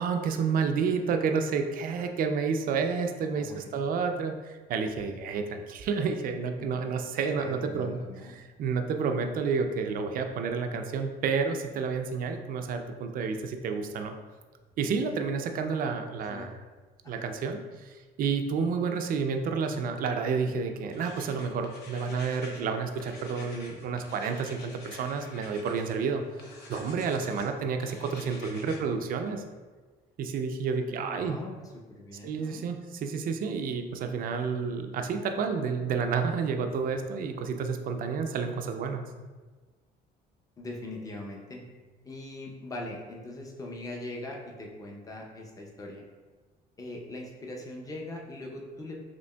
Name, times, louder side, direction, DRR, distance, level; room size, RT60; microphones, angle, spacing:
voice 1, 0.0-8.0 8.6-14.1 14.8-16.5 17.1-29.4 30.2-31.4 32.2-39.1, right 5 dB, 55° right, 6 dB, 0.4 m, -30 dB
voice 2, 3.3-3.9 7.4-8.4 16.3-16.5 17.0-17.3 22.3-22.5 27.9-28.1 31.0-31.5 31.9-32.6 40.6-41.6 42.0-46.0 46.8-49.0, left 2 dB, 20° left, -1 dB, 0.7 m, -41 dB
sound 1, 20.9-22.6 22.9-25.9 26.4-27.5 27.8-28.8, left 3 dB, 75° left, 0.8 m, -48 dB
5.1 x 2.8 x 2.2 m, 1.3 s
cardioid pair, 110°, 17 cm